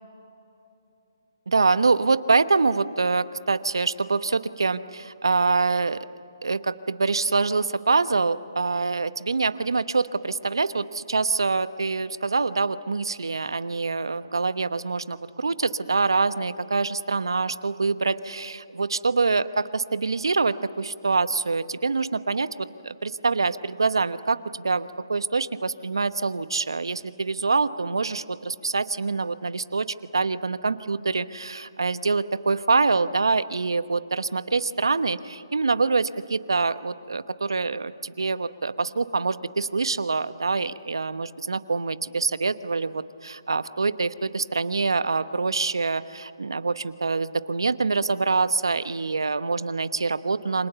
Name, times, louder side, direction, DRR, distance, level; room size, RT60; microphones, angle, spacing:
voice 1, 1.5-6.1 6.4-29.9 30.1-50.7, right 4 dB, 80° right, 14 dB, 1.0 m, -25 dB
28.0 x 25.5 x 7.0 m, 2.9 s
figure-of-eight pair, 145°, 2 cm